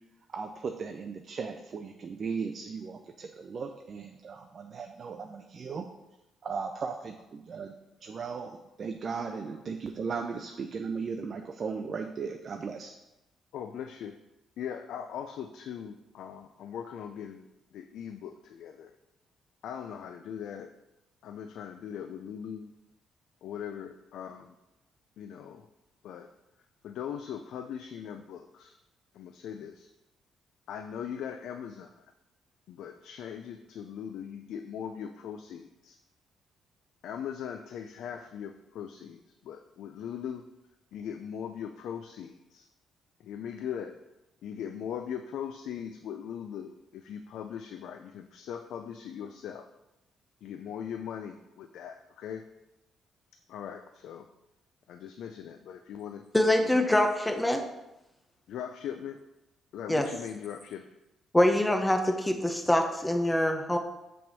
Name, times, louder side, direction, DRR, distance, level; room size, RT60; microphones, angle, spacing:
voice 1, 0.3-5.9 6.4-7.7 8.0-12.9, right 5 dB, 45° right, 5 dB, 0.5 m, -37 dB
voice 2, 13.5-14.2 14.6-17.5 17.7-18.9 19.6-20.7 21.2-22.7 23.4-24.5 25.2-25.7 26.0-26.3 26.8-28.8 29.1-29.9 30.7-32.1 32.7-36.0 37.0-40.5 40.9-42.7 43.2-44.0 44.4-49.7 50.4-52.5 53.5-54.3 54.9-56.2 56.6-56.9 58.5-59.2 59.7-61.0, left 8 dB, 80° left, 7 dB, 0.4 m, -40 dB
voice 3, 56.3-57.6 59.9-60.1 61.3-63.8, left 1 dB, 10° left, 4 dB, 0.8 m, -24 dB
6.0 x 3.5 x 6.0 m, 0.95 s
cardioid pair, 90°, 0 cm